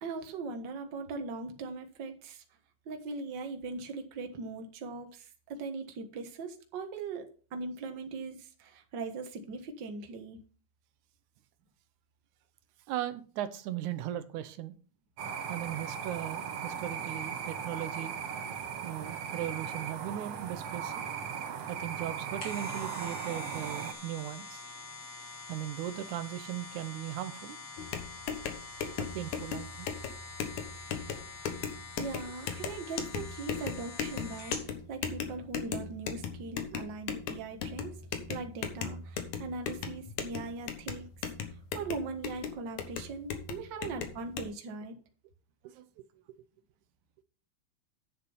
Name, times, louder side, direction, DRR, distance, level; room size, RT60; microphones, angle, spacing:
voice 1, 0.0-2.4 2.8-10.4 32.0-34.5 34.9-38.0 38.3-41.0 41.7-44.9, right 4 dB, 45° right, 1.7 m, -40 dB
voice 2, 12.9-14.7 15.5-18.1 18.8-21.0 21.7-24.6 25.5-27.6 29.0-29.9 45.6-46.1, right 12 dB, 85° right, 2.2 m, -38 dB
sound 1, 15.2-23.9, right 7 dB, 65° right, 2.1 m, -38 dB
sound 2, 22.1-34.7 35.2-35.3, left 4 dB, 45° left, 3.5 m, -46 dB
sound 3, 27.8-44.5, left 7 dB, 80° left, 2.6 m, -38 dB
9.8 x 6.8 x 5.5 m
omnidirectional pair, 3.4 m